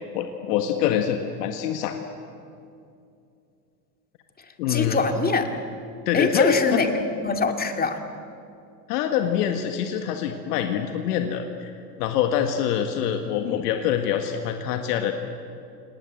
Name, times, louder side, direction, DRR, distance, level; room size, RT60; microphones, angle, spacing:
voice 1, 0.1-2.0 4.6-5.0 6.1-6.8 8.9-11.7 12.0-15.1, left 9 dB, 70° left, 5 dB, 1.9 m, -25 dB
voice 2, 4.7-5.5 6.1-6.9 7.2-8.0, left 4 dB, 20° left, 5 dB, 2.6 m, -22 dB
28.5 x 19.5 x 7.8 m, 2.5 s
hypercardioid pair, 100°, 49 cm